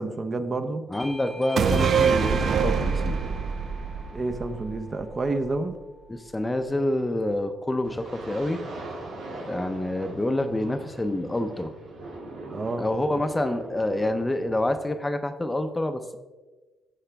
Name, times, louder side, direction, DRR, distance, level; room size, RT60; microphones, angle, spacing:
voice 1, 0.0-0.8 4.1-5.7 12.5-12.8, right 2 dB, 35° right, 9 dB, 0.7 m, -29 dB
voice 2, 0.9-3.2 6.1-8.6 9.5-11.7 12.8-16.2, left 1 dB, 15° left, 8 dB, 0.6 m, -27 dB
Bell / Doorbell, 0.9-6.1, left 2 dB, ahead, 1.0 m, -42 dB
sound 1, 1.6-5.1 5.5-5.6, right 6 dB, 55° right, 0.4 m, -24 dB
sound 2, 7.8-14.8, right 2 dB, 80° right, 2.2 m, -41 dB
14.0 x 4.9 x 3.4 m, 1.3 s
cardioid pair, 90°, 0 cm